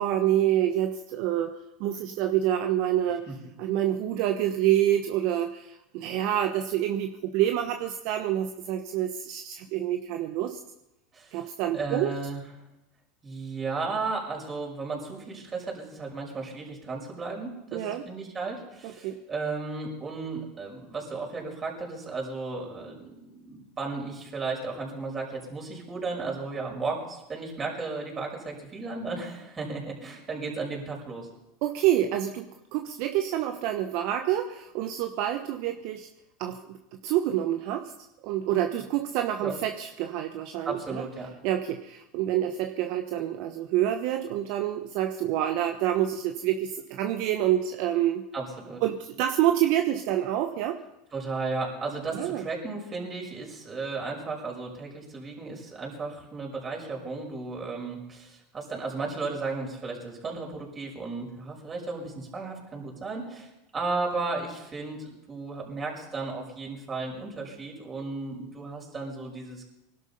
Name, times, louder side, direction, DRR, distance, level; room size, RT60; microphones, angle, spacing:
voice 1, 0.0-1.5 1.8-3.2 3.6-10.6 11.3-12.1 17.7-18.0 18.8-19.2 31.6-36.1 36.4-36.8 37.0-37.9 38.2-41.0 41.4-48.2 48.8-50.8 52.1-52.4, right 12 dB, 60° right, 6 dB, 1.1 m, -27 dB
voice 2, 11.7-12.4 13.2-31.3 39.4-39.6 40.6-41.3 48.3-48.8 51.1-69.6, right 3 dB, 25° right, 0 dB, 5.9 m, -34 dB
21.0 x 12.0 x 5.6 m, 0.93 s
hypercardioid pair, 95°, 0 cm